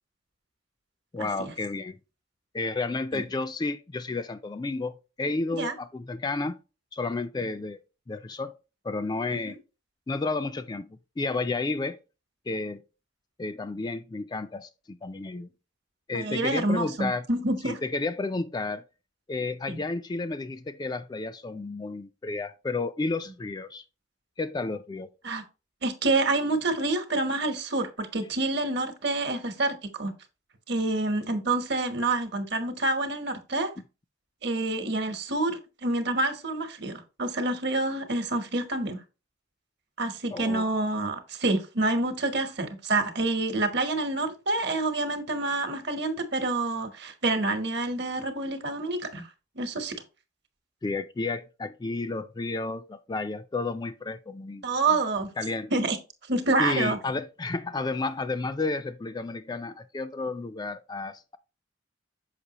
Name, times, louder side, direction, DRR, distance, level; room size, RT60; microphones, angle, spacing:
voice 1, 1.1-2.0 2.5-6.6 6.9-7.8 8.1-8.5 8.8-9.6 10.1-12.0 12.5-12.8 13.4-15.5 16.1-17.3 17.6-18.8 19.3-23.8 24.4-25.1 40.3-40.7 50.8-54.6 55.4-55.7 56.6-61.4, left 3 dB, 20° left, 0.3 m, -31 dB
voice 2, 16.1-17.8 19.7-19.8 25.2-25.4 25.8-30.1 30.7-33.7 34.4-39.0 40.0-49.3 49.6-50.0 54.6-55.3 55.7-56.0 56.3-57.0, right 2 dB, 55° right, 1.0 m, -27 dB
6.6 x 5.4 x 2.9 m
head